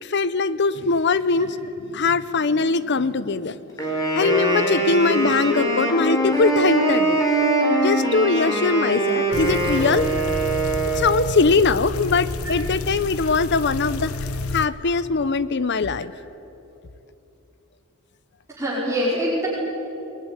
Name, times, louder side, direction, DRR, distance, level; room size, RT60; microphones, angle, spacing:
voice 1, 0.0-1.6 1.9-3.6 4.1-7.2 7.8-10.1 10.9-14.1 14.5-16.1, left 4 dB, 55° left, 15 dB, 0.7 m, -21 dB
Wind instrument woodwind instrument, 3.8-11.4, right 2 dB, 15° left, 4.9 m, -22 dB
sound 1, 9.3-14.7, left 3 dB, 80° left, 1.1 m, -30 dB
voice 2, 18.5-19.5, equal, 15° right, -8 dB, 5.3 m, -25 dB
22.0 x 22.0 x 9.9 m, 3.0 s
head